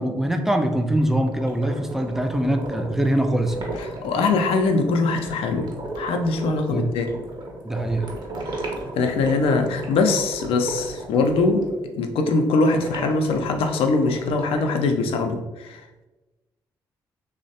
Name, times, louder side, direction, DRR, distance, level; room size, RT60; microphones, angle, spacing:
voice 1, 0.0-3.7 6.7-6.9 7.6-8.1, right 1 dB, 5° right, 5 dB, 0.4 m, -23 dB
stereo bubbles (straw), 1.0-11.7 12.8-14.7, right 1 dB, 45° right, 0.8 m, -36 dB
voice 2, 4.0-5.7 6.0-7.1 8.5-8.7 9.0-11.7 12.0-15.8, left 3 dB, 60° left, 5 dB, 0.4 m, -22 dB
3.1 x 2.0 x 2.6 m, 1.1 s
hypercardioid pair, 40°, 11 cm